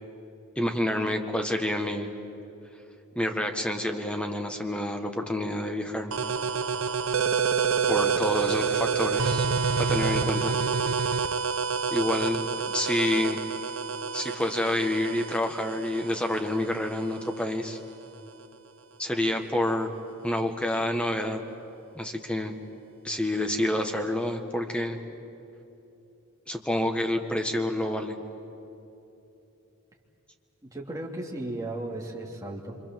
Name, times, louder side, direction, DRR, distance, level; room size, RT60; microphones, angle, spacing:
voice 1, 0.5-2.1 3.1-6.1 7.9-9.4 9.8-10.5 11.9-13.4 14.1-17.8 19.0-19.9 20.2-21.4 21.9-22.5 23.0-25.0 26.5-28.1, left 1 dB, 5° left, 4 dB, 1.7 m, -28 dB
sound 1, 6.1-17.5, right 5 dB, 60° right, 0.8 m, -28 dB
voice 2, 30.6-32.8, right 1 dB, 15° right, -2 dB, 2.9 m, -35 dB
26.5 x 26.0 x 7.7 m, 2.9 s
head